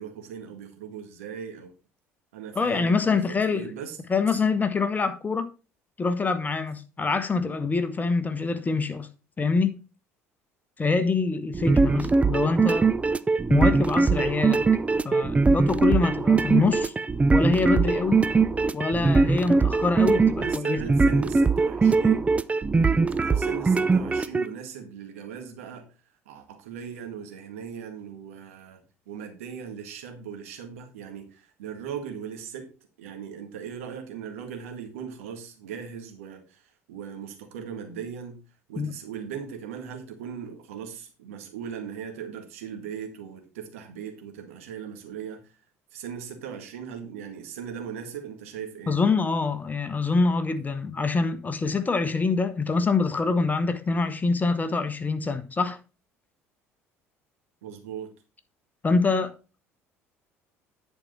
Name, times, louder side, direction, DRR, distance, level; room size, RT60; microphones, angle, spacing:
voice 1, 0.0-1.7 2.3-4.0 20.4-22.3 23.1-25.9 26.2-32.7 33.0-38.4 38.7-45.5 45.9-49.0 57.6-58.1, right 7 dB, 70° right, 1.7 m, -39 dB
voice 2, 2.5-3.7 4.1-5.5 6.0-9.1 9.4-9.8 10.8-12.9 13.5-14.6 15.0-16.9 17.3-18.2 18.7-20.8 38.8-38.9 48.9-55.8 58.8-59.3, left 4 dB, 20° left, 1.2 m, -25 dB
sound 1, 11.5-24.4, right 4 dB, 15° right, 0.5 m, -21 dB
10.5 x 4.7 x 5.4 m
figure-of-eight pair, 60°, 8 cm